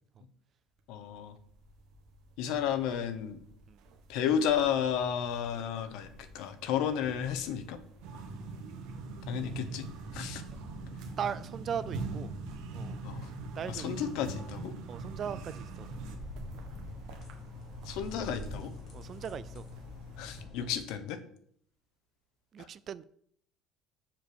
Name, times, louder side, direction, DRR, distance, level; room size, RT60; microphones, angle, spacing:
sound 1, 0.8-20.4, right 1 dB, 65° right, 1.6 m, -50 dB
voice 1, 0.9-1.4 2.4-3.4 4.1-7.8 9.3-9.9 10.1-10.4 13.0-13.3 13.7-14.7 17.8-18.7 20.2-21.2 22.6-22.7, left 8 dB, 75° left, 1.1 m, -32 dB
sound 2, 8.0-16.2, right 3 dB, 80° right, 1.5 m, -41 dB
voice 2, 11.2-12.3 12.7-13.0 13.6-14.0 14.9-15.9 18.9-19.6 22.5-23.0, right 8 dB, 35° right, 0.4 m, -38 dB
sound 3, 15.8-20.8, left 4 dB, 40° left, 2.6 m, -48 dB
7.4 x 4.8 x 7.0 m
cardioid pair, 155°, 0 cm